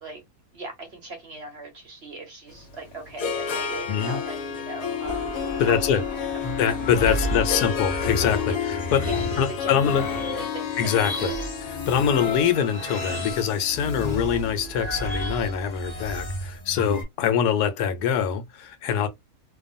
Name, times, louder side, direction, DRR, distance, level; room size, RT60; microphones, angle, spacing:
voice 1, 0.5-5.8 6.3-6.7 7.0-7.6 9.0-11.4, right 3 dB, 50° right, 0.9 m, -39 dB
Harp, 2.5-14.7, left 8 dB, 70° left, 1.0 m, -31 dB
voice 2, 3.9-4.2 5.6-6.0 6.6-9.1 9.4-10.1 10.8-11.3 11.9-19.1, left 8 dB, 90° left, 1.1 m, -24 dB
sound 1, 5.0-10.7, right 2 dB, 25° right, 0.3 m, -40 dB
sound 2, 6.4-17.0, left 1 dB, 45° left, 0.5 m, -32 dB
2.6 x 2.3 x 2.5 m
omnidirectional pair, 1.7 m